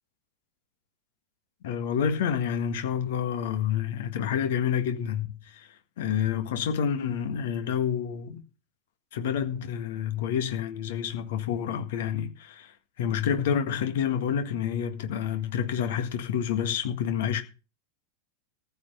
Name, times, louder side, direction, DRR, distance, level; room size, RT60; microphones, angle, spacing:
voice 1, 1.6-5.7 6.0-8.4 9.1-17.4, left 8 dB, 55° left, 1.7 m, -28 dB
14.5 x 8.5 x 5.6 m
figure-of-eight pair, 90°, 0 cm